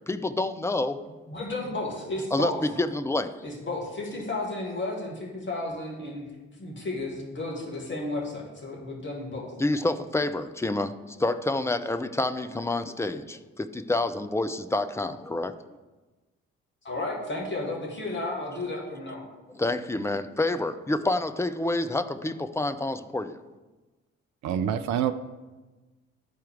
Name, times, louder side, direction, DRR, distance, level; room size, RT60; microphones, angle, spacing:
voice 1, 0.1-1.0 2.3-2.5 2.8-3.4 9.6-15.5 19.5-23.4, left 2 dB, 10° left, 10 dB, 0.4 m, -28 dB
voice 2, 1.3-2.6 3.4-6.3 6.6-9.5 16.8-19.3, left 2 dB, 30° left, -2 dB, 2.1 m, -33 dB
voice 3, 24.4-25.1, right 9 dB, 50° right, 11 dB, 0.5 m, -26 dB
11.5 x 4.4 x 3.6 m, 1.2 s
figure-of-eight pair, 40°, 36 cm